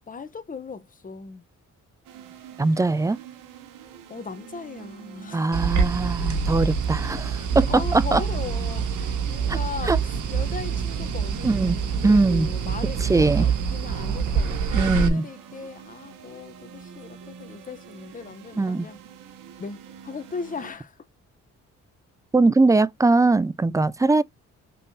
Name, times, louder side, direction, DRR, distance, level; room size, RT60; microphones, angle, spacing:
voice 1, 0.1-1.5 4.1-5.6 7.7-19.0 19.6-21.0, left 5 dB, 25° left, 0.8 m, -38 dB
sound 1, 2.0-20.7, right 9 dB, 85° right, 0.9 m, -45 dB
voice 2, 2.6-3.2 5.3-8.2 9.5-9.6 9.9-10.0 11.4-12.5 13.0-13.5 14.7-15.2 18.6-18.9 22.3-24.2, right 3 dB, 10° right, 0.3 m, -21 dB
sound 2, 5.5-15.1, right 6 dB, 70° right, 1.2 m, -26 dB
5.4 x 3.3 x 2.6 m
supercardioid pair, 55°, 32 cm